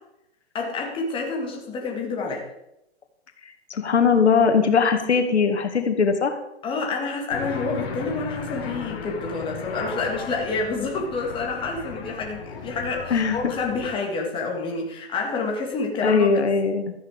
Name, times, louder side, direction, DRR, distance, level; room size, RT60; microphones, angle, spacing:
voice 1, 0.5-2.4 6.6-16.3, left 3 dB, 15° left, 0 dB, 2.2 m, -28 dB
voice 2, 3.7-6.4 13.1-13.4 16.0-16.9, left 5 dB, 85° left, 6 dB, 2.0 m, -20 dB
sound 1, 7.3-14.0, left 5 dB, 60° left, 3.3 m, -35 dB
13.5 x 9.6 x 5.1 m, 0.84 s
hypercardioid pair, 150°, 33 cm